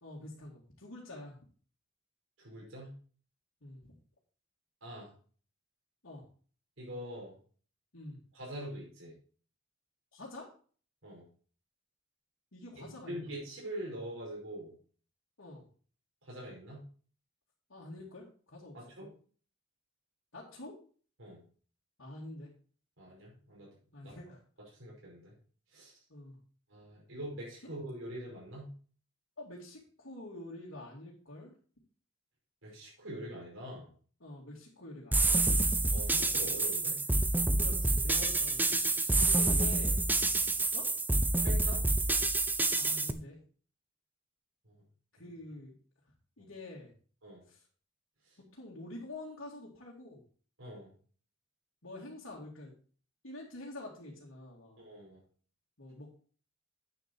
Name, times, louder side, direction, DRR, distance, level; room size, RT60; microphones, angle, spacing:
voice 1, 0.0-1.4 3.6-3.8 6.0-6.2 7.9-8.2 10.1-10.5 12.5-13.3 15.4-15.6 17.7-19.1 20.3-20.8 22.0-22.5 23.9-24.4 26.1-26.4 29.4-31.5 34.2-35.4 37.6-40.0 40.7-40.9 42.8-43.4 45.2-45.8 46.4-46.9 47.5-47.6 48.5-50.2 51.8-52.7 53.2-54.8 55.8-56.1, left 2 dB, 85° left, -6 dB, 2.4 m, -47 dB
voice 2, 2.4-2.9 4.8-5.1 6.8-7.3 8.3-9.1 11.0-11.3 12.8-14.7 16.2-16.8 18.7-19.1 21.2-21.4 23.0-23.7 24.0-24.2 24.7-25.3 25.7-25.9 26.7-28.7 32.6-33.9 35.9-37.0 39.1-39.4 41.4-41.8 44.6-44.7 45.2-45.3 46.4-46.5 47.2-47.4 50.6-50.9 54.8-55.2, right 1 dB, 85° right, -4 dB, 5.0 m, -44 dB
sound 1, 35.1-43.1, right 2 dB, 10° right, 0.6 m, -28 dB
9.1 x 6.8 x 4.4 m, 0.42 s
head